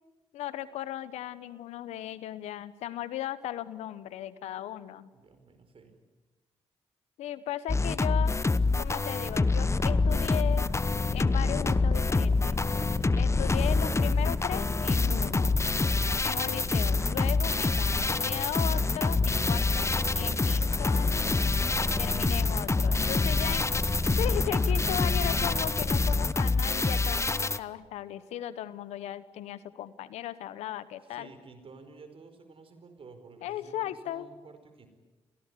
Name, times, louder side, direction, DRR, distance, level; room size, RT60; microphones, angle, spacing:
voice 1, 0.3-5.1 7.2-8.4 8.8-10.7 11.1-12.6 13.1-15.6 16.2-21.3 22.0-23.6 24.1-31.3 33.4-34.3, left 12 dB, 90° left, 15 dB, 1.0 m, -37 dB
voice 2, 5.1-5.9 15.8-16.2 21.6-22.1 23.0-23.8 31.0-34.9, right 4 dB, 55° right, 8 dB, 4.9 m, -51 dB
sound 1, 7.7-27.6, left 3 dB, 25° left, 1.0 m, -27 dB
sound 2, 8.7-25.7, right 1 dB, 15° right, 3.6 m, -52 dB
Purr, 9.0-26.7, left 3 dB, 40° left, 2.2 m, -33 dB
25.5 x 17.5 x 9.9 m, 1.2 s
supercardioid pair, 50°, 11 cm